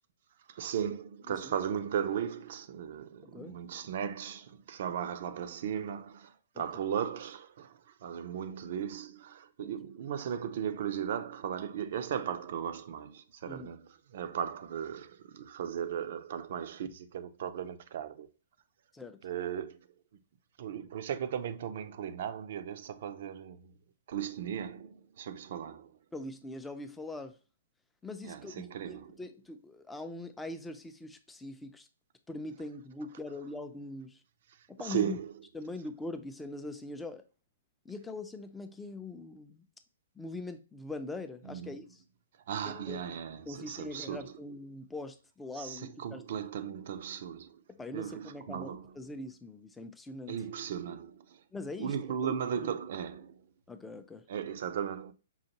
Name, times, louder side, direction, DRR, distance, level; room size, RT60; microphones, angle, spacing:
voice 1, 0.5-18.3 19.2-19.8 20.6-23.7 24.1-26.0 28.2-29.2 34.8-35.3 41.4-41.8 42.5-44.3 45.5-47.6 47.9-49.0 50.3-51.4 51.8-53.4 54.3-55.1, right 8 dB, 55° right, 0.5 m, -37 dB
voice 2, 3.2-3.6 9.6-9.8 13.5-13.7 18.9-19.2 26.1-27.4 28.0-31.9 32.3-34.2 34.7-35.2 35.5-37.2 37.8-39.7 40.2-42.0 42.6-43.0 43.5-46.4 47.7-50.4 51.5-52.0 52.2-52.3 52.6-52.7 53.7-54.2, left 2 dB, 10° left, 0.5 m, -42 dB
5.5 x 2.5 x 2.8 m
figure-of-eight pair, 120°, 0 cm